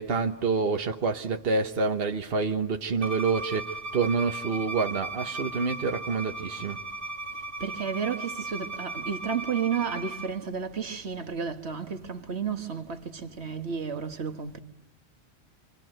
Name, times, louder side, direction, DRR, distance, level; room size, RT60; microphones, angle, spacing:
voice 1, 0.0-6.8, right 4 dB, 60° right, 1.4 m, -27 dB
Bowed string instrument, 3.0-10.3, right 2 dB, 30° right, 1.5 m, -37 dB
voice 2, 7.6-14.6, right 6 dB, 75° right, 1.7 m, -32 dB
29.5 x 24.5 x 7.8 m
omnidirectional pair, 1.1 m